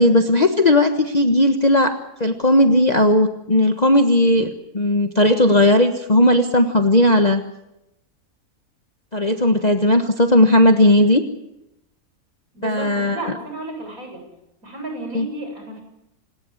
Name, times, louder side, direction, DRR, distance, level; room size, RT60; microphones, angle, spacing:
voice 1, 0.0-7.4 9.1-11.2 12.6-13.2 15.1-15.3, left 1 dB, 30° left, 5 dB, 1.4 m, -16 dB
voice 2, 12.5-14.2 14.6-15.8, right 2 dB, 65° right, 3 dB, 8.3 m, -32 dB
27.5 x 20.0 x 7.2 m, 0.85 s
omnidirectional pair, 1.6 m